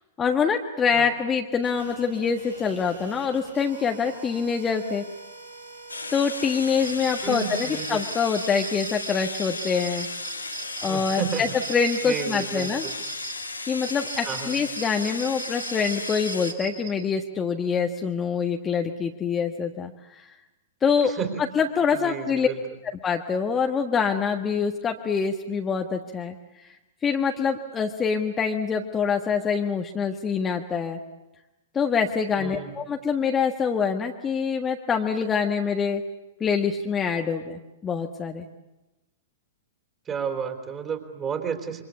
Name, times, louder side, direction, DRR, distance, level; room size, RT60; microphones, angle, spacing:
voice 1, 0.2-5.0 6.1-10.1 10.8-12.9 13.7-20.2 20.8-21.1 21.5-22.5 23.0-26.3 27.0-31.0 31.7-36.0 36.4-38.5, left 6 dB, 20° left, 3 dB, 1.5 m, -25 dB
sound 1, 1.6-8.1, right 2 dB, 90° right, 7.5 m, -45 dB
sound 2, 5.9-16.5, left 3 dB, 80° left, 2.1 m, -35 dB
sound 3, 6.8-13.3 13.8-16.9, right 6 dB, 55° right, 4.9 m, -38 dB
voice 2, 7.2-8.0 10.8-11.5 12.0-13.0 14.2-14.6 21.0-21.4 21.9-22.6 32.4-32.8 40.1-41.8, right 7 dB, 20° right, 6 dB, 3.9 m, -32 dB
27.0 x 24.5 x 8.4 m, 1.0 s
figure-of-eight pair, 105°, 0 cm